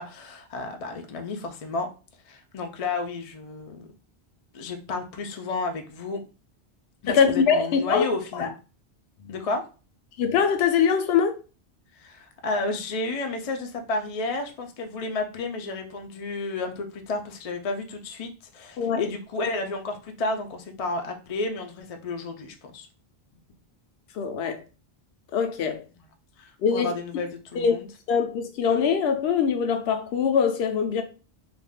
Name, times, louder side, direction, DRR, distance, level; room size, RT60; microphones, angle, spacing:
voice 1, 0.0-1.9 2.3-3.9 4.5-6.2 7.0-8.5 9.3-9.6 12.0-22.9 26.4-27.9, left 3 dB, 55° left, 0.4 m, -31 dB
voice 2, 7.1-8.1 8.3-8.5 9.3-9.4 10.2-11.4 18.8-19.1 24.2-24.6 25.3-25.8 26.6-26.9 27.6-27.8 28.1-31.0, left 6 dB, 70° left, 0.8 m, -23 dB
2.5 x 2.3 x 3.5 m
omnidirectional pair, 1.1 m